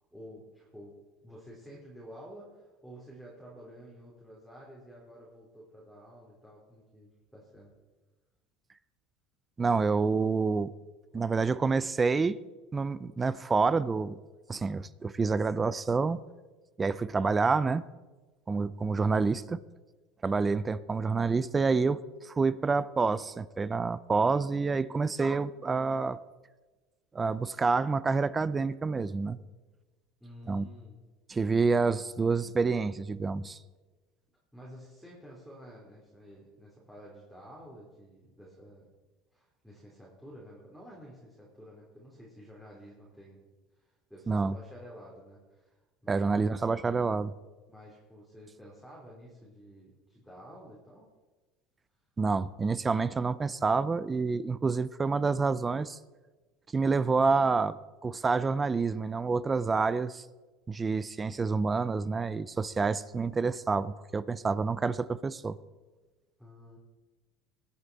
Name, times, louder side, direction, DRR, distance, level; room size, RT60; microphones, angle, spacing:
voice 1, 0.1-0.9 1.2-7.7 30.2-31.0 34.5-38.9 39.3-46.5 47.7-51.1 66.4-66.8, equal, ahead, -6 dB, 3.1 m, -51 dB
voice 2, 9.6-10.7 11.1-12.4 12.7-14.2 14.5-16.2 16.8-17.8 18.5-19.6 20.2-26.2 27.1-29.4 30.5-30.7 31.3-33.6 44.3-44.6 46.1-47.3 52.2-56.0 56.7-57.8 58.0-60.2 60.7-65.6, right 4 dB, 20° right, 17 dB, 0.5 m, -28 dB
21.0 x 8.1 x 4.0 m, 1.2 s
supercardioid pair, 125°, 0 cm